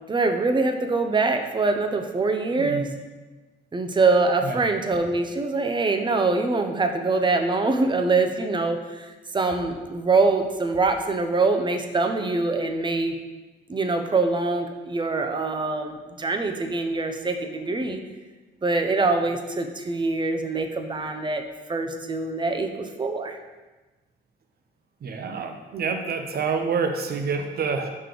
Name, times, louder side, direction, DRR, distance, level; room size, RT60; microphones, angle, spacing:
voice 1, 0.1-2.9 3.7-13.2 13.7-18.0 18.6-21.4 21.7-23.4, right 3 dB, 25° right, 5 dB, 0.6 m, -24 dB
voice 2, 25.0-27.9, right 5 dB, 50° right, 5 dB, 0.8 m, -27 dB
5.9 x 3.2 x 5.1 m, 1.2 s
cardioid pair, 90°, 20 cm